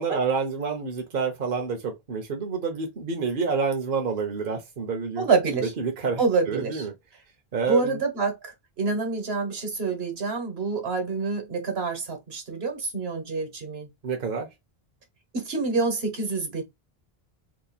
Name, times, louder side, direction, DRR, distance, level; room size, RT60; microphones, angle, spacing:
voice 1, 0.0-5.3 5.6-6.2 6.5-6.9 7.5-8.0 14.0-14.5, right 5 dB, 60° right, 0.9 m, -28 dB
voice 2, 5.2-5.7 6.2-6.8 7.7-13.9 15.3-16.6, right 4 dB, 80° right, 1.4 m, -27 dB
2.9 x 2.4 x 4.0 m
omnidirectional pair, 1.0 m